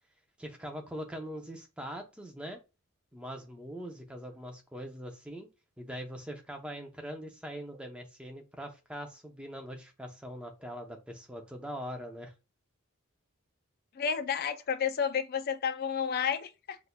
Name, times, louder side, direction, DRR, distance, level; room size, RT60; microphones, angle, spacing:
voice 1, 0.4-2.6 3.1-5.5 5.8-12.3, equal, 5° right, 0.7 m, -42 dB
voice 2, 13.9-16.8, left 7 dB, 45° left, 0.4 m, -31 dB
6.1 x 2.6 x 2.3 m
head